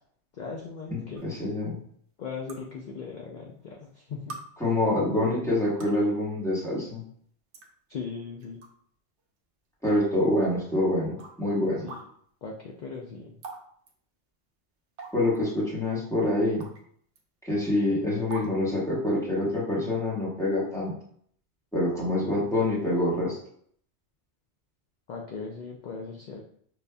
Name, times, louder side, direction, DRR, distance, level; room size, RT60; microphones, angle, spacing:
voice 1, 0.3-1.2 2.2-4.4 7.9-8.6 11.8-11.9 12.4-13.4 25.1-26.4, left 5 dB, 55° left, 0 dB, 0.5 m, -38 dB
voice 2, 0.9-1.8 4.6-7.0 9.8-11.9 15.1-16.7 17.4-20.9 21.7-23.4, left 1 dB, 5° left, -7 dB, 1.2 m, -26 dB
sound 1, 1.2-1.3 2.5-2.6 3.6-3.7 4.3-4.4 5.6-6.0 7.0-7.1 7.5-7.7 8.4-8.7 9.2-9.3 10.3-10.4 11.2-11.3 11.9-12.0 13.4-13.6 13.9-14.0 15.0-15.4 16.6-16.8 17.2-17.3 18.3-18.5, right 3 dB, 75° right, 0.9 m, -41 dB
5.3 x 2.6 x 2.2 m, 0.63 s
omnidirectional pair, 1.2 m